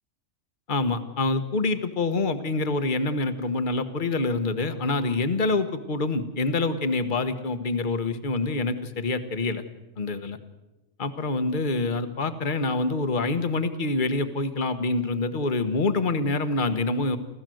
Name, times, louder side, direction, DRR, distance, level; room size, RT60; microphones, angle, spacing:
voice 1, 0.7-9.6 10.0-10.4 11.0-17.2, left 3 dB, 40° left, 10 dB, 1.4 m, -26 dB
28.5 x 14.5 x 7.8 m, 1.1 s
omnidirectional pair, 1.4 m